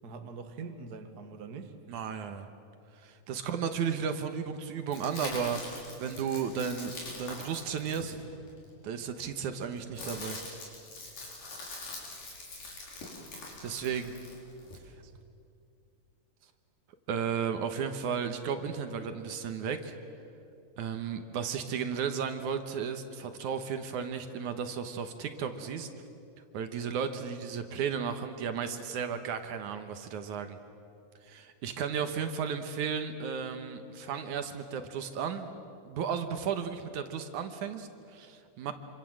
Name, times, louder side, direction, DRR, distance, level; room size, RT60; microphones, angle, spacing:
voice 1, 0.0-1.7 15.0-15.2, right 4 dB, 45° right, 6 dB, 1.3 m, -43 dB
voice 2, 1.9-2.5 3.0-8.2 8.8-10.4 13.6-14.1 17.1-20.0 20.8-25.9 26.5-30.6 31.2-35.5 35.8-38.7, right 7 dB, 65° right, 8 dB, 2.4 m, -34 dB
sound 1, 4.9-8.7 9.5-14.8, left 2 dB, 70° left, 6.3 m, -43 dB
26.5 x 25.5 x 7.6 m, 2.6 s
omnidirectional pair, 4.0 m